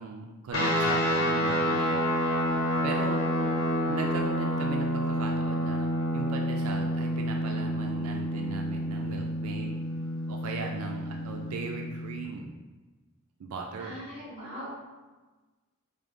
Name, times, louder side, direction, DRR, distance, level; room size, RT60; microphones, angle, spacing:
voice 1, 0.0-2.1 2.8-3.2 3.9-9.8 10.3-12.6 13.4-14.0, right 4 dB, 80° right, 1 dB, 0.4 m, -38 dB
sound 1, 0.5-12.3, equal, 70° left, 0.9 m, -29 dB
voice 2, 3.1-3.5 11.0-11.3 13.8-14.7, equal, 25° right, -6 dB, 1.3 m, -42 dB
5.0 x 2.0 x 3.6 m, 1.2 s
head